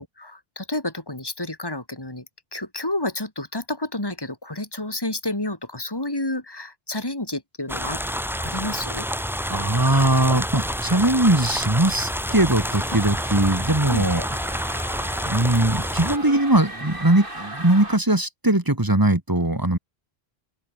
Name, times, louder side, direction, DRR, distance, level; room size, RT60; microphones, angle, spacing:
voice 1, 0.0-2.2 2.5-8.0 8.4-9.0 13.9-14.1, left 2 dB, 20° left, 3.2 m, -30 dB
sound 1, 7.7-16.2, equal, ahead, 5.5 m, -28 dB
voice 2, 9.5-14.2 15.3-19.8, right 1 dB, 20° right, 1.9 m, -20 dB
sound 2, 12.6-18.0, right 1 dB, 55° right, 6.3 m, -38 dB
open air
omnidirectional pair, 1.1 m